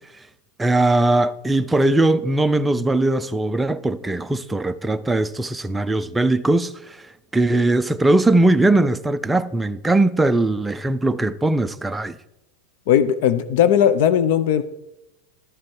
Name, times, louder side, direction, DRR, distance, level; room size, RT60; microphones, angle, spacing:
voice 1, 0.6-12.2, right 2 dB, 5° right, 0.4 m, -20 dB
voice 2, 12.9-14.6, left 9 dB, 60° left, 0.6 m, -17 dB
11.5 x 7.5 x 4.6 m
supercardioid pair, 155°, 0 cm